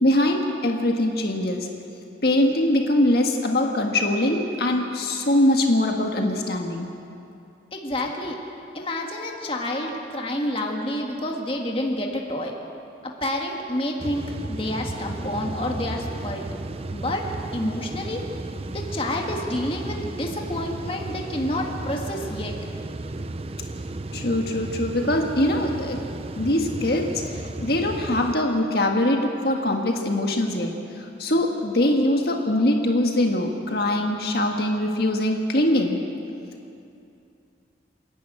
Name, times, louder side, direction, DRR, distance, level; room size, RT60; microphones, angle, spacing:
voice 1, 0.0-1.7 2.2-6.9 24.1-26.0 26.4-36.0, left 1 dB, 60° left, 2 dB, 1.7 m, -22 dB
voice 2, 7.7-8.4 8.7-12.5 13.0-16.5 16.9-17.2 17.5-18.2 18.7-22.5, left 1 dB, 30° left, 1 dB, 1.9 m, -29 dB
sound 1, 14.0-28.3, right 2 dB, 35° right, 0.6 m, -34 dB
28.0 x 11.0 x 8.9 m, 2.6 s
head